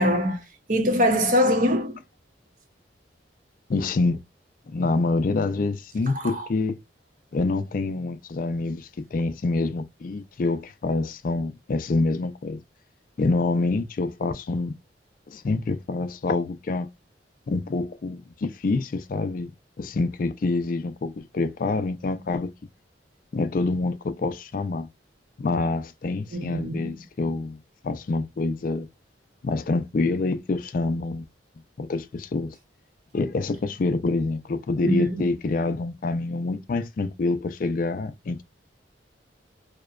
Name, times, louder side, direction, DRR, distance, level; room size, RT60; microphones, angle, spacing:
voice 1, 0.0-2.0 6.1-6.5 26.3-27.0 34.8-35.3, equal, 45° right, 0.7 m, -23 dB
voice 2, 3.7-4.2 4.7-6.8 7.3-12.6 13.2-14.8 15.3-16.9 17.5-19.5 19.8-22.5 23.3-24.9 25.4-28.9 29.4-31.2 31.8-32.5 33.1-38.4, left 3 dB, 45° left, 0.4 m, -26 dB
2.7 x 2.1 x 2.3 m
head